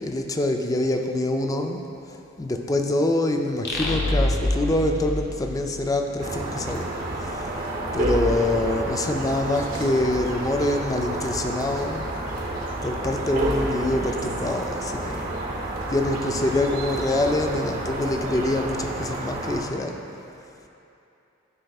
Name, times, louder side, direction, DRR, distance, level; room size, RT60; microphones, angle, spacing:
voice 1, 0.0-1.8 2.4-6.9 7.2-7.4 7.9-12.1 12.8-15.3 15.9-20.0, left 1 dB, 20° left, 4 dB, 0.4 m, -25 dB
sound 1, 3.6-6.3, left 1 dB, 55° left, 0.8 m, -26 dB
sound 2, 6.2-19.6, right 1 dB, 45° right, 0.9 m, -29 dB
12.5 x 5.2 x 2.4 m, 2.8 s
head